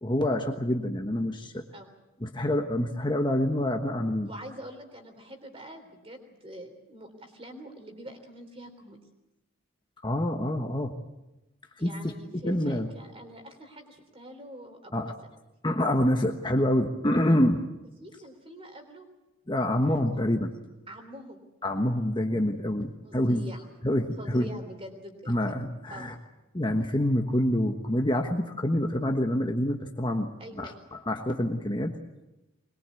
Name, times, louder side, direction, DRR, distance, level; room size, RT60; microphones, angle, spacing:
voice 1, 0.0-1.6 2.2-4.3 10.0-10.9 11.8-12.9 14.9-15.1 15.6-17.6 19.5-20.5 21.6-23.5 23.8-24.6 25.2-26.1 26.5-32.0, left 1 dB, 20° left, 3 dB, 1.2 m, -27 dB
voice 2, 4.2-9.0 11.8-15.1 18.0-19.1 19.9-20.0 20.9-21.4 23.0-23.7 24.2-25.3 25.9-26.1 30.4-30.7, right 1 dB, 25° right, 5 dB, 3.5 m, -45 dB
22.0 x 22.0 x 8.4 m, 1.0 s
head